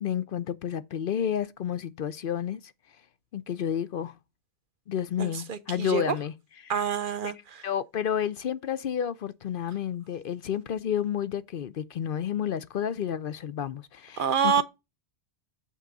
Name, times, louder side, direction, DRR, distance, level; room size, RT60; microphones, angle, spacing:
voice 1, 0.0-2.7 3.3-4.1 4.9-6.3 6.6-6.7 7.2-7.3 7.6-14.6, left 9 dB, 60° left, 0.7 m, -30 dB
voice 2, 5.2-6.2 6.7-7.7 14.2-14.6, right 7 dB, 55° right, 0.8 m, -27 dB
7.5 x 3.7 x 6.6 m
omnidirectional pair, 1.1 m